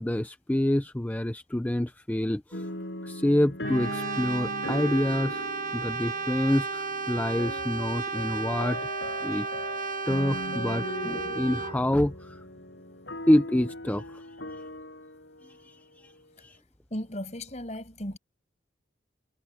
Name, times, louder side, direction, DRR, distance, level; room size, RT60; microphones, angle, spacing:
voice 1, 0.0-2.7 3.0-5.4 5.7-8.8 9.2-9.7 10.1-12.4 13.3-14.3 15.4-16.1 16.4-16.6, left 1 dB, 10° left, 0.4 m, -27 dB
sound 1, 2.5-16.5, left 1 dB, 85° left, 6.8 m, -39 dB
Brass instrument, 3.6-11.8, right 4 dB, 45° right, 1.2 m, -33 dB
voice 2, 16.9-18.2, left 1 dB, 40° left, 6.5 m, -36 dB
head